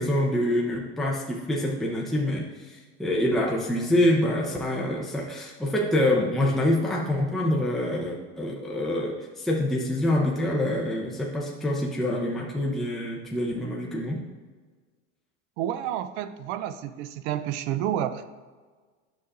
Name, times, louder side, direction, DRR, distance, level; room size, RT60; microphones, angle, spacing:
voice 1, 0.0-14.2, left 1 dB, ahead, -2 dB, 0.8 m, -26 dB
voice 2, 15.6-18.2, right 11 dB, 65° right, 11 dB, 0.6 m, -30 dB
9.5 x 6.4 x 2.5 m, 1.4 s
supercardioid pair, 105°, 37 cm